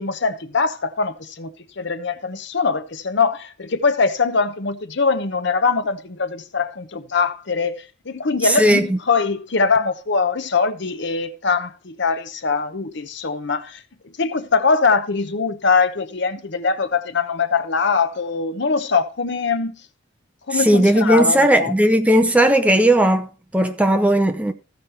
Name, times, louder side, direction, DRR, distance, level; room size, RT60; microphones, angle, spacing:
voice 1, 0.0-19.8 20.5-21.7, left 4 dB, 60° left, 0.9 m, -22 dB
voice 2, 8.4-9.0 20.5-24.5, right 1 dB, 5° right, 0.7 m, -16 dB
14.5 x 5.3 x 4.2 m
head